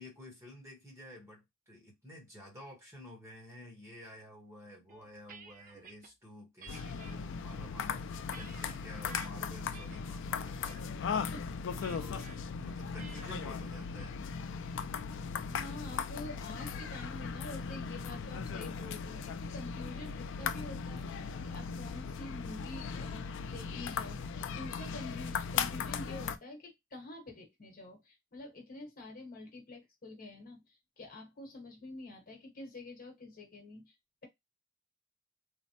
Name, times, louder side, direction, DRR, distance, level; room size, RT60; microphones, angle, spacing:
voice 1, 0.0-11.3 11.9-14.2, left 1 dB, 15° right, 1.1 m, -51 dB
sound 1, 4.9-6.1 6.6-7.1 7.8-9.3 9.7-10.1 10.5-10.8 11.8-12.4 13.0-13.4, right 5 dB, 40° right, 0.6 m, -53 dB
sound 2, 6.7-26.4, left 6 dB, 65° left, 0.4 m, -38 dB
voice 2, 11.7-12.1 15.5-34.0, left 2 dB, 45° left, 1.1 m, -47 dB
3.2 x 2.1 x 2.7 m
head